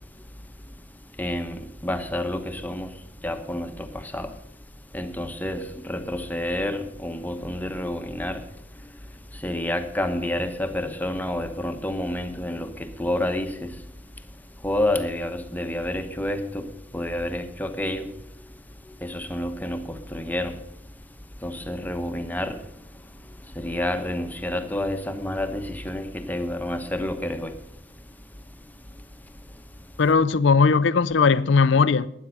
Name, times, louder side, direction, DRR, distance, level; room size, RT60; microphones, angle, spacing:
voice 1, 1.2-2.9 3.2-4.3 4.9-8.4 9.4-13.7 14.6-16.7 16.9-18.1 19.0-20.6 21.4-22.6 23.6-27.6, left 1 dB, 10° left, 1.0 m, -29 dB
voice 2, 30.0-32.1, left 4 dB, 70° left, 0.5 m, -18 dB
12.0 x 10.0 x 6.6 m
head